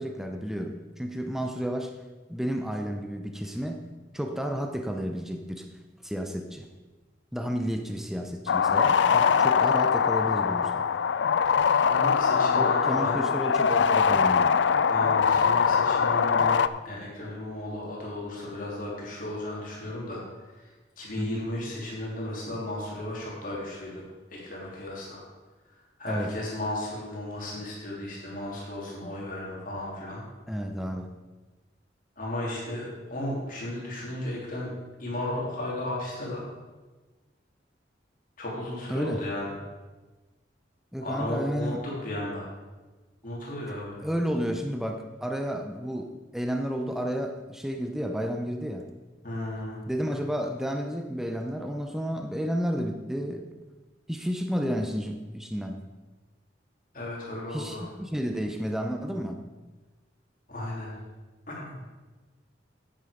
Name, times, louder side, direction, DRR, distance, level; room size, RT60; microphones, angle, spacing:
voice 1, 0.0-2.0 2.3-3.9 4.1-5.7 6.0-6.7 7.3-10.8 12.5-14.6 21.2-21.5 26.1-26.3 30.5-31.1 38.9-39.2 40.9-41.8 43.7-43.8 44.0-48.9 49.9-53.5 54.1-55.8 57.5-59.4, equal, ahead, 4 dB, 0.6 m, -31 dB
sound 1, 8.5-16.7, left 6 dB, 80° left, 0.4 m, -22 dB
voice 2, 11.9-13.2 14.9-16.6 16.8-20.2 21.0-24.0 24.3-25.2 26.0-30.2 32.2-34.7 35.0-36.4 38.4-39.5 41.0-42.5 43.2-44.0 49.2-49.8 56.9-57.8 60.5-60.9 61.5-61.7, left 1 dB, 50° left, -4 dB, 3.2 m, -34 dB
10.0 x 9.2 x 5.1 m, 1.2 s
head